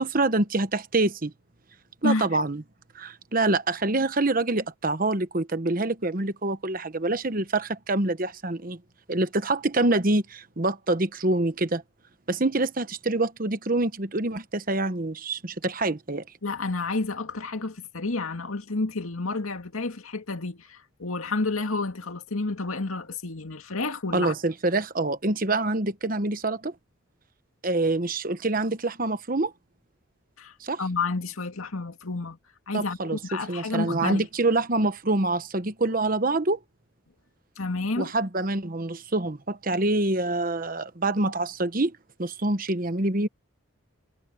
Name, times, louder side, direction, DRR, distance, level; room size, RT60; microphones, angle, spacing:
voice 1, 0.0-1.3 2.0-2.6 2.9-8.8 9.1-11.8 12.3-16.2 24.1-26.7 27.6-29.5 30.6-30.8 32.7-36.6 38.0-43.3, right 2 dB, 40° right, 1.1 m, -26 dB
voice 2, 16.4-24.3 30.4-32.4 32.7-34.3 37.6-38.1, left 3 dB, 90° left, 2.2 m, -30 dB
head